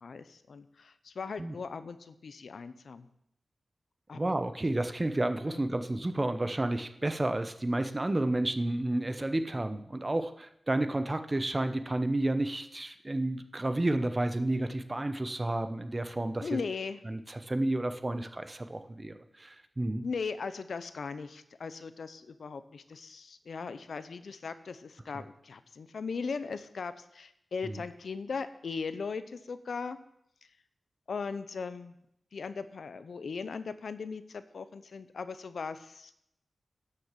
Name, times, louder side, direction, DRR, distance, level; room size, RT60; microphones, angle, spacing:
voice 1, 0.0-3.1 4.1-4.3 5.5-5.6 16.4-17.0 20.0-30.0 31.1-32.0 32.3-36.3, left 5 dB, 75° left, 13 dB, 0.7 m, -38 dB
voice 2, 4.1-16.6 17.0-20.0 27.6-27.8, right 1 dB, 25° right, 9 dB, 0.8 m, -31 dB
11.5 x 6.6 x 7.3 m, 0.78 s
wide cardioid pair, 110°, 0 cm